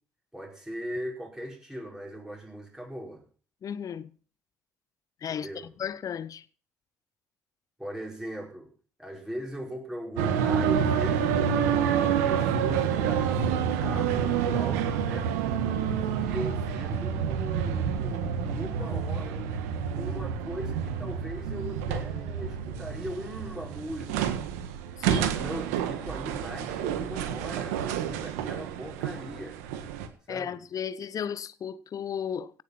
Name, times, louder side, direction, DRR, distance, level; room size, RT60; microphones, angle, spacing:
voice 1, 0.3-3.2 5.3-5.7 7.8-8.7 9.0-15.3 16.1-19.5 19.9-24.4 25.1-29.6 30.3-30.6, equal, 5° right, 5.2 m, -39 dB
voice 2, 3.6-4.1 5.2-5.5 5.8-6.4 25.0-25.3 30.3-32.6, left 8 dB, 45° left, 0.9 m, -34 dB
sound 1, 10.2-30.1, right 8 dB, 75° right, 1.6 m, -28 dB
17.0 x 7.6 x 7.2 m
hypercardioid pair, 55°, 8 cm